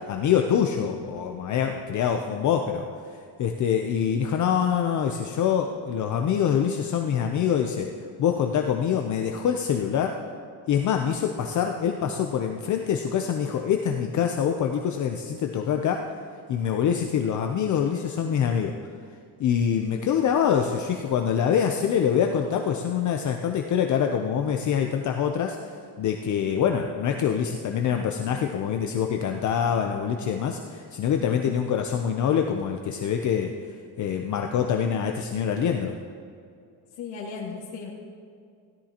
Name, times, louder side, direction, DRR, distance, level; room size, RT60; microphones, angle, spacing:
voice 1, 0.1-2.8 3.4-7.9 8.2-10.2 10.7-16.1 16.5-18.7 19.4-33.5 34.0-36.0, left 8 dB, 45° left, 4 dB, 0.6 m, -25 dB
voice 2, 37.0-37.9, left 5 dB, 80° left, -6 dB, 1.9 m, -35 dB
16.5 x 12.5 x 2.9 m, 2.4 s
cardioid pair, 155°, 44 cm